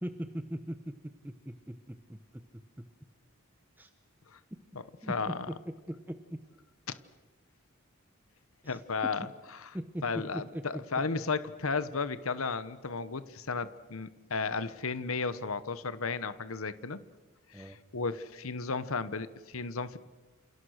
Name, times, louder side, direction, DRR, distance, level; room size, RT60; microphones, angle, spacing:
voice 1, 0.0-2.4 3.8-3.9 5.0-5.5 5.9-6.4 8.6-8.8 9.7-10.0 10.3-11.2 17.5-17.8, equal, 10° right, 8 dB, 1.0 m, -40 dB
voice 2, 5.1-5.5 6.9-7.0 8.6-9.3 9.6-9.7 10.0-17.0 17.5-20.0, left 4 dB, 75° left, 14 dB, 1.1 m, -34 dB
28.5 x 28.5 x 6.6 m, 1.3 s
head